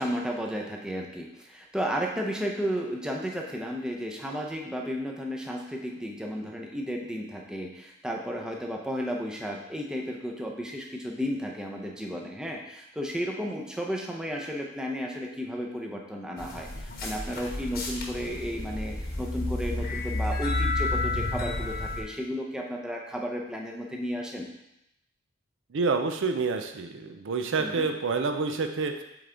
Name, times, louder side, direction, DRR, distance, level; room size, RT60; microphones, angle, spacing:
voice 1, 0.0-24.5 27.6-27.9, equal, 5° right, 0 dB, 0.6 m, -33 dB
sound 1, 16.4-22.0, left 2 dB, 50° left, 1.1 m, -31 dB
voice 2, 25.7-28.9, right 4 dB, 60° right, 5 dB, 0.5 m, -28 dB
7.7 x 3.5 x 3.8 m, 0.86 s
head